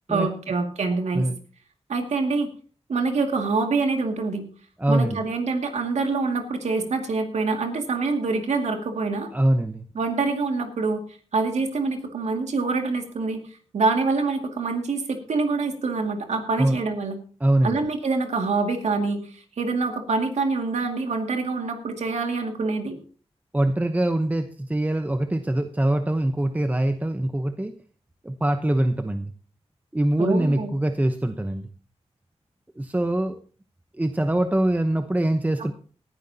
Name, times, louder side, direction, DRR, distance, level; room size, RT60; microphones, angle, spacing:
voice 1, 0.1-1.3 1.9-2.5 2.9-4.5 4.9-9.3 9.9-11.0 11.3-13.4 13.7-17.2 17.6-23.0 30.2-30.8, right 3 dB, 85° right, 4 dB, 2.3 m, -25 dB
voice 2, 4.8-5.2 9.3-9.8 16.6-16.8 17.4-17.8 23.5-27.7 28.2-29.3 29.9-31.7 32.8-33.4 34.0-35.7, right 1 dB, 15° right, 8 dB, 0.9 m, -23 dB
18.5 x 12.0 x 2.8 m, 0.41 s
cardioid pair, 70°, 11 cm